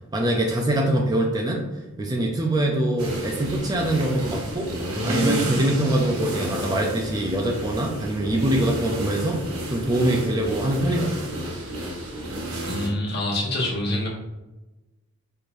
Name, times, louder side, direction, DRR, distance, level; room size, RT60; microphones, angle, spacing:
voice 1, 0.1-1.6 2.0-4.7 5.0-9.4 9.7-11.3, right 1 dB, 15° right, 1 dB, 0.3 m, -24 dB
sound 1, 3.0-12.9, right 1 dB, 75° right, 0.8 m, -30 dB
voice 2, 12.6-14.1, left 1 dB, 45° left, -4 dB, 1.1 m, -26 dB
4.4 x 3.1 x 2.5 m, 1.1 s
head